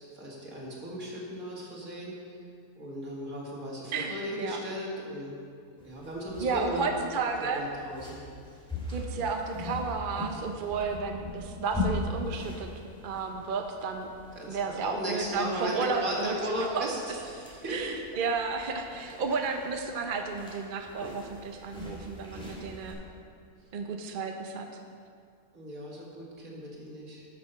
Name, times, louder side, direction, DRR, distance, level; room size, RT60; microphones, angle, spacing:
voice 1, 0.0-2.1 2.8-5.3 5.8-6.9 7.5-8.2 14.4-17.9 25.5-27.3, equal, 60° right, -3 dB, 2.4 m, -36 dB
voice 2, 3.9-4.6 6.4-7.6 8.9-12.7 13.0-14.1 14.5-16.9 17.7-23.0 23.7-24.7, right 4 dB, 45° right, 4 dB, 0.7 m, -32 dB
sound 1, 5.8-22.9, left 2 dB, 5° left, 2.6 m, -40 dB
12.5 x 6.7 x 5.6 m, 2.3 s
omnidirectional pair, 1.6 m